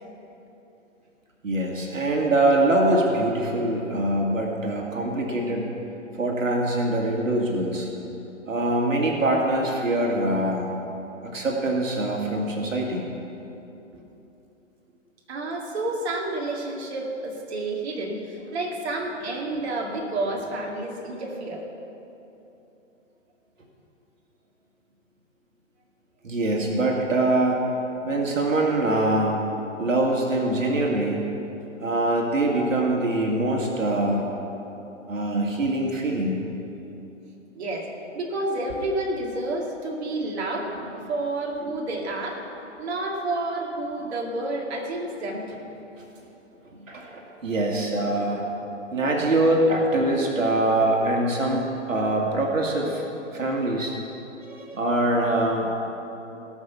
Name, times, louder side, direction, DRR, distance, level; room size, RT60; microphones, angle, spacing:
voice 1, 1.4-5.7 6.1-7.9 8.5-10.7 11.2-13.1 26.2-27.6 28.0-29.5 29.8-31.2 31.8-34.3 35.1-36.4 46.9-48.5 48.9-53.0 53.3-54.0 54.5-55.7, right 1 dB, 85° right, -1 dB, 2.3 m, -23 dB
voice 2, 15.3-21.6 32.5-32.7 37.6-42.4 42.8-45.7, right 2 dB, 55° right, 0 dB, 2.2 m, -30 dB
18.5 x 6.2 x 7.0 m, 3.0 s
hypercardioid pair, 130°, 38 cm